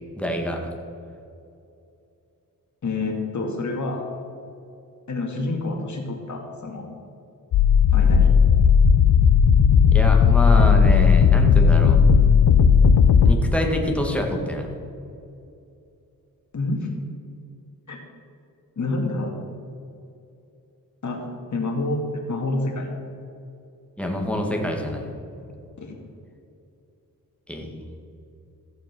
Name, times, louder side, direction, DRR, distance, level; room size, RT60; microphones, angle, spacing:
voice 1, 0.2-0.7 9.9-12.0 13.2-14.7 24.0-25.1 25.3-25.4 27.5-28.0, left 1 dB, 5° left, 1 dB, 2.0 m, -26 dB
voice 2, 2.8-4.1 5.1-6.9 7.9-8.4 16.5-16.9 17.9-18.0 18.8-19.4 21.0-22.9 25.8-26.0, left 2 dB, 55° left, 1 dB, 2.4 m, -28 dB
sound 1, 7.5-13.3, left 6 dB, 80° left, 0.7 m, -15 dB
15.0 x 6.9 x 6.2 m, 2.6 s
cardioid pair, 90°, 35 cm